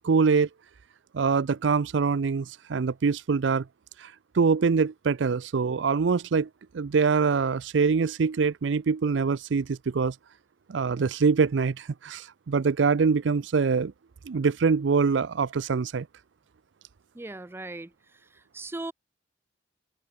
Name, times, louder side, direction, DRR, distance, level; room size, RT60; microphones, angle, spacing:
voice 1, 0.0-0.5 1.1-3.6 4.0-6.5 6.7-10.1 10.7-13.9 14.3-16.1, right 5 dB, 75° right, 0.5 m, -24 dB
voice 2, 17.2-17.9 18.5-18.9, right 2 dB, 15° right, 0.4 m, -37 dB
open air
head